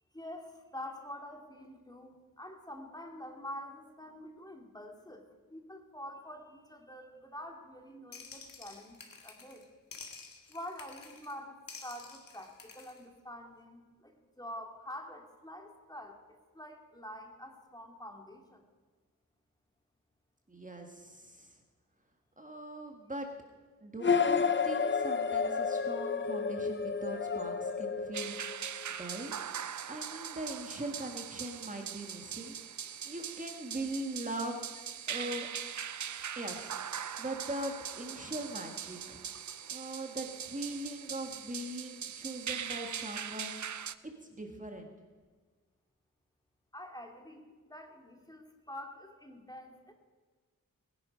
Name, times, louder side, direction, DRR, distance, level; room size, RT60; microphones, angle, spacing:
voice 1, 0.1-5.2 5.5-9.6 10.5-16.2 16.5-18.6 46.7-49.9, left 1 dB, 10° left, 3 dB, 2.4 m, -46 dB
sound 1, 8.1-9.6 9.9-11.3 11.7-13.0, left 4 dB, 80° left, 2.0 m, -50 dB
voice 2, 20.5-21.6 22.4-23.3 23.8-28.4 28.9-29.3 29.9-32.6 33.0-34.6 35.1-35.5 36.4-36.7 37.2-39.2 39.7-43.6 44.3-44.9, right 1 dB, 25° right, 3 dB, 1.8 m, -41 dB
sound 2, 24.0-28.8, left 5 dB, 35° left, 0.8 m, -31 dB
sound 3, 28.1-43.9, right 8 dB, 60° right, 0.6 m, -41 dB
20.5 x 10.5 x 5.2 m, 1.4 s
cardioid pair, 65°, 34 cm